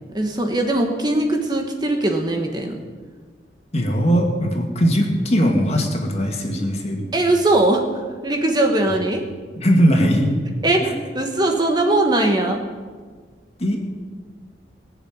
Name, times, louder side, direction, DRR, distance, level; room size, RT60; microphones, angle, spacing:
voice 1, 0.1-2.8 7.1-7.8 8.2-9.2 10.6-10.9 11.1-12.6, right 2 dB, 25° right, 3 dB, 1.4 m, -20 dB
voice 2, 3.7-7.0 9.6-10.3 10.8-11.0 13.6-13.8, equal, 35° left, 1 dB, 2.4 m, -19 dB
20.5 x 7.1 x 9.4 m, 1.5 s
head